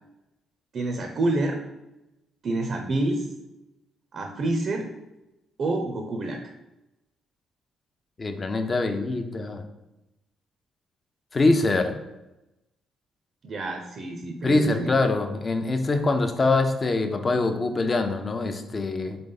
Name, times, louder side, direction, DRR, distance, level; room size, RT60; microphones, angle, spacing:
voice 1, 0.7-1.6 2.4-3.3 4.1-4.9 5.6-6.4 13.4-14.9, right 2 dB, 55° right, 4 dB, 0.5 m, -27 dB
voice 2, 8.2-9.6 11.3-11.9 14.4-19.2, left 2 dB, 35° left, 7 dB, 0.5 m, -24 dB
3.9 x 3.5 x 3.8 m, 0.98 s
cardioid pair, 90°, 0 cm